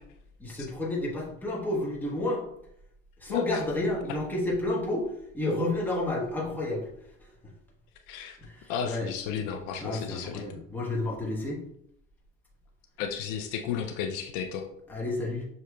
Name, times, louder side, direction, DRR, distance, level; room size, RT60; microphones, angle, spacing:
voice 1, 0.4-2.5 3.2-5.1 5.3-6.9 7.2-7.3 8.4-9.1 9.8-11.6 14.9-15.5, left 1 dB, 5° left, -4 dB, 0.9 m, -30 dB
voice 2, 8.1-8.4 8.7-10.4 13.0-14.7, left 8 dB, 65° left, 5 dB, 0.5 m, -33 dB
6.3 x 2.8 x 2.3 m, 0.75 s
cardioid pair, 150°, 32 cm